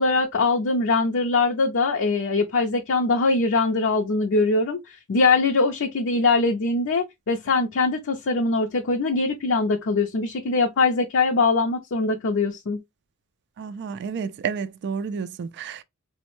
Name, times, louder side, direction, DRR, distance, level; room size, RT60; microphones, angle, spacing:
voice 1, 0.0-12.8, left 3 dB, 60° left, 0.5 m, -22 dB
voice 2, 13.6-15.8, right 6 dB, 50° right, 0.3 m, -30 dB
4.1 x 2.0 x 3.0 m
head